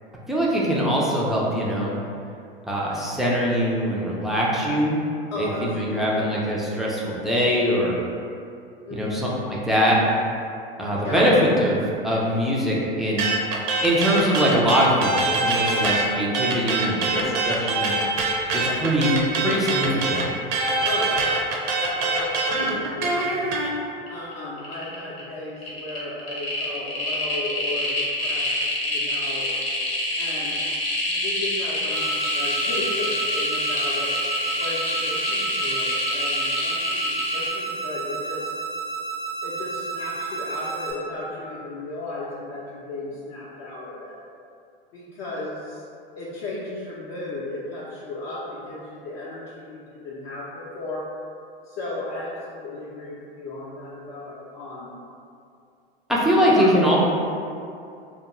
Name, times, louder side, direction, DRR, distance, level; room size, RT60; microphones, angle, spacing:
voice 1, 0.3-1.9 2.7-5.0 5.4-7.9 8.9-10.0 10.8-13.2 13.8-18.0 18.5-19.1 19.4-20.2 56.1-57.0, equal, ahead, -6 dB, 0.3 m, -22 dB
voice 2, 5.3-6.3 8.9-9.3 11.0-11.2 20.9-21.4 21.8-23.5 24.1-29.5 30.2-30.5 31.1-34.1 34.6-38.5 39.4-44.2 44.9-45.8 46.2-51.1 51.7-54.9 56.4-56.8, left 2 dB, 50° left, -7 dB, 0.5 m, -35 dB
sound 1, 13.2-16.1 16.3-23.7, right 3 dB, 55° right, 0.5 m, -24 dB
sound 2, 24.1-24.3 24.6-25.2 25.6-37.5, left 1 dB, 85° left, 0.8 m, -26 dB
sound 3, 31.9-40.9, right 4 dB, 85° right, 0.8 m, -32 dB
2.4 x 2.2 x 2.9 m, 2.4 s
hypercardioid pair, 90°, 29 cm